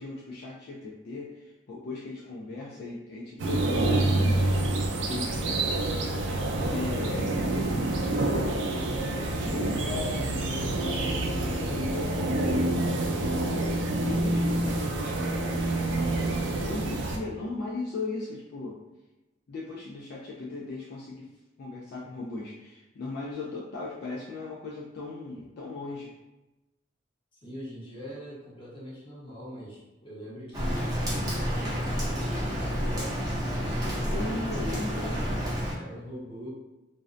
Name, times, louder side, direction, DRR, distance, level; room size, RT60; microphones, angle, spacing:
voice 1, 0.0-4.5 5.1-5.6 6.7-7.3 8.0-9.0 9.5-18.8 19.5-21.3 21.6-26.1 33.9-35.2, left 3 dB, 60° left, -3 dB, 0.3 m, -38 dB
sound 1, 3.4-17.2, right 2 dB, 85° right, 0.4 m, -27 dB
voice 2, 27.3-34.7 35.7-36.5, equal, 30° left, -7 dB, 0.9 m, -43 dB
Rain, 30.5-35.7, equal, 20° right, 0.6 m, -29 dB
2.6 x 2.0 x 2.4 m, 1.0 s
head